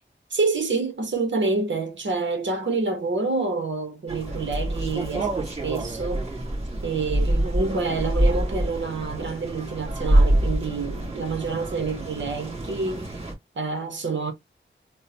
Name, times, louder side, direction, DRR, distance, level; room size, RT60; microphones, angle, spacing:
voice 1, 0.3-6.3 6.8-13.2 13.5-14.3, right 3 dB, 70° right, 1.1 m, -27 dB
sound 1, 4.1-13.3, right 1 dB, 35° right, 2.0 m, -26 dB
3.6 x 2.3 x 2.8 m
wide cardioid pair, 85°, 20 cm